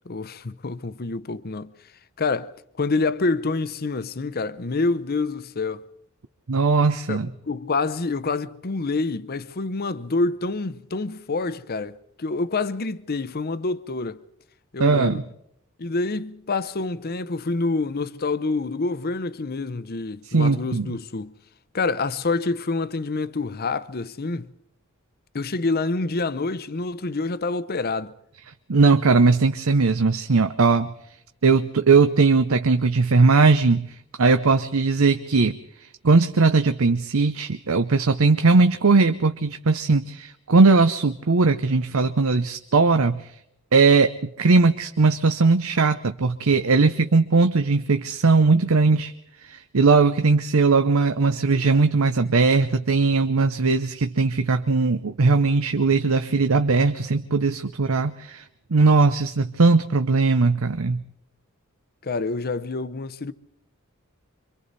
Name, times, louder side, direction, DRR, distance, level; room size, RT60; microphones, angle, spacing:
voice 1, 0.1-1.7 2.2-5.8 7.1-14.2 14.7-15.2 15.8-21.3 21.7-24.5 25.3-28.1 62.0-63.3, left 3 dB, 45° left, 0.8 m, -27 dB
voice 2, 6.5-7.3 14.8-15.2 20.2-20.9 28.7-30.9 31.4-43.4 43.7-49.1 49.4-58.5 58.7-61.0, right 4 dB, 85° right, 0.8 m, -19 dB
27.0 x 24.5 x 4.1 m
head